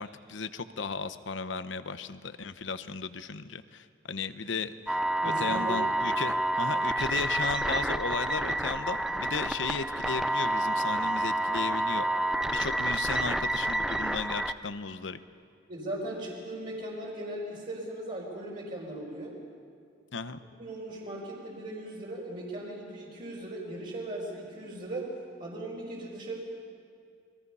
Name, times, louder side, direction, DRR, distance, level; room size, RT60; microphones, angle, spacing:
voice 1, 0.0-5.0 5.4-12.0 12.5-15.2 20.1-20.4, left 4 dB, 85° left, 11 dB, 0.9 m, -35 dB
sound 1, 4.9-14.5, right 1 dB, 5° right, 0.5 m, -29 dB
voice 2, 5.2-5.8 15.7-19.3 20.6-25.1 25.4-26.4, right 1 dB, 50° right, -5 dB, 4.5 m, -38 dB
29.0 x 22.0 x 5.6 m, 2.3 s
head